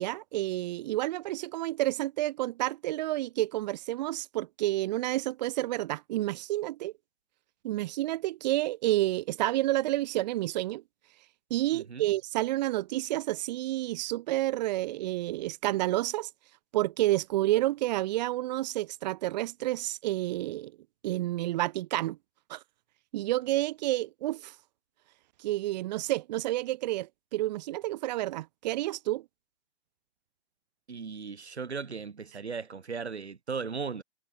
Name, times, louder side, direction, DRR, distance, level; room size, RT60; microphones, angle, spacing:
voice 1, 0.0-6.9 7.6-10.8 11.5-16.3 16.7-20.7 21.0-22.2 22.5-22.6 23.1-24.5 25.4-29.2, right 16 dB, 40° right, 1.3 m, -30 dB
voice 2, 11.7-12.1 30.9-34.0, right 5 dB, 85° right, 1.8 m, -37 dB
figure-of-eight pair, 130°, 32 cm